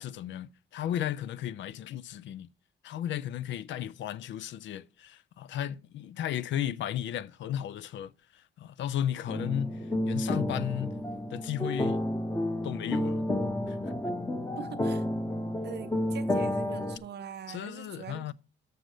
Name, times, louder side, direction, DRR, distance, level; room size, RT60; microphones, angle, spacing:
voice 1, 0.0-2.5 2.8-11.0 11.3-12.0 12.6-13.2 13.7-13.8 17.5-18.3, left 11 dB, 70° left, 0.5 m, -34 dB
sound 1, 9.3-17.0, left 1 dB, 15° left, 0.9 m, -31 dB
voice 2, 14.6-15.1 15.6-18.3, right 9 dB, 60° right, 0.8 m, -43 dB
6.7 x 6.3 x 6.3 m
cardioid pair, 90°, 20 cm